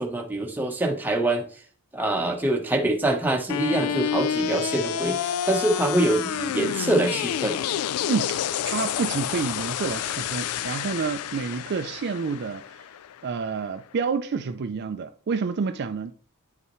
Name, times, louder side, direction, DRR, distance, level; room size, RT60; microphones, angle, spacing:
voice 1, 0.0-1.4 1.9-7.6, right 2 dB, 10° right, 1.0 m, -25 dB
sound 1, 3.5-13.5, left 9 dB, 80° left, 0.3 m, -29 dB
voice 2, 8.1-12.9 13.2-16.1, right 5 dB, 50° right, 0.4 m, -29 dB
9.8 x 5.5 x 3.1 m
head